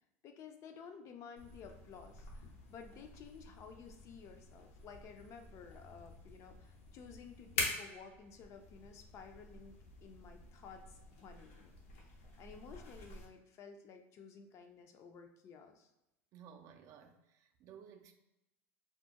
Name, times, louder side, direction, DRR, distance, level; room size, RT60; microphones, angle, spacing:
voice 1, 0.2-15.9, left 6 dB, 40° left, 6 dB, 0.4 m, -54 dB
sound 1, 1.4-13.2, left 3 dB, 80° left, 0.6 m, -47 dB
voice 2, 16.3-18.1, right 7 dB, 45° right, 5 dB, 0.3 m, -56 dB
2.3 x 2.1 x 2.8 m, 0.92 s
hypercardioid pair, 100°, 7 cm